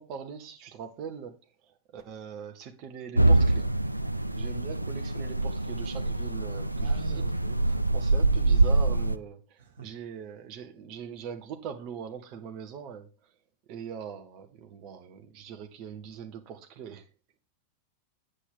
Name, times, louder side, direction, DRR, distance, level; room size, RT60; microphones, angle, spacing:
voice 1, 0.0-3.7 4.3-7.2 7.9-13.3 13.7-17.1, right 7 dB, 40° right, 1.8 m, -42 dB
sound 1, 3.2-9.2, right 2 dB, 85° right, 0.4 m, -25 dB
voice 2, 6.8-7.9 9.6-9.9, right 4 dB, 65° right, 2.5 m, -43 dB
9.0 x 8.3 x 4.0 m
figure-of-eight pair, 90°, 0 cm